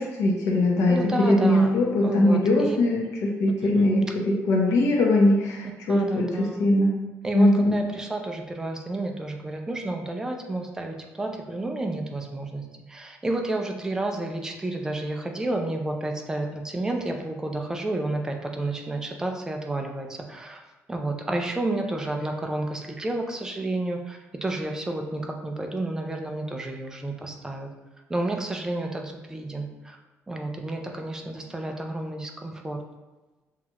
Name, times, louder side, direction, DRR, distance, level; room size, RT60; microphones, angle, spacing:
voice 1, 0.2-6.9 7.3-7.8, left 1 dB, 80° left, -2 dB, 0.8 m, -21 dB
voice 2, 0.9-1.7 2.0-2.8 3.6-3.9 5.9-6.7 7.2-20.6 20.9-27.7 28.1-30.0 30.3-32.8, right 2 dB, 10° right, 2 dB, 0.4 m, -31 dB
5.8 x 2.4 x 2.9 m, 1.2 s
cardioid pair, 160°, 5 cm